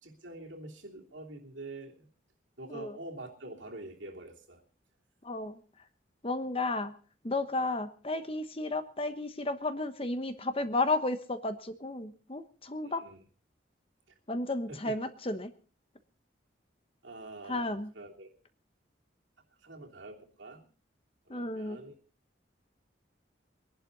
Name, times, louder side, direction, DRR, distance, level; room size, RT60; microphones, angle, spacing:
voice 1, 0.0-2.1 2.6-4.6 12.8-13.2 14.7-14.9 17.0-18.3 19.6-20.6 21.3-21.9, right 2 dB, 80° right, 0 dB, 3.2 m, -46 dB
voice 2, 5.2-5.6 6.2-6.9 7.2-13.0 14.3-15.5 17.5-17.9 21.3-21.8, left 2 dB, 30° left, 10 dB, 1.1 m, -33 dB
23.5 x 11.0 x 4.0 m, 0.39 s
head